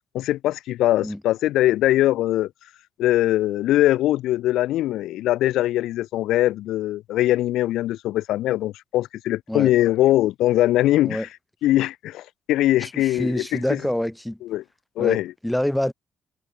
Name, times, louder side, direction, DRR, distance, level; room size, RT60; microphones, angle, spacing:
voice 1, 0.1-2.5 3.0-11.3 11.6-13.8 14.4-14.6 15.0-15.3, left 14 dB, 85° left, 1.1 m, -21 dB
voice 2, 12.8-14.4 15.0-15.9, left 1 dB, 5° left, 1.8 m, -26 dB
cardioid pair, 90°, 0 cm